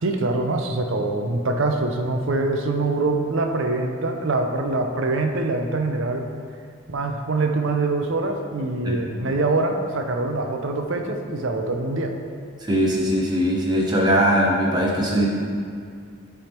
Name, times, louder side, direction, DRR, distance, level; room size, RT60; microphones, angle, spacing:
voice 1, 0.0-6.3 6.9-12.1, right 2 dB, 60° right, 4 dB, 0.5 m, -24 dB
voice 2, 12.7-15.3, equal, 20° right, -3 dB, 0.9 m, -20 dB
8.5 x 3.5 x 4.4 m, 2.2 s
head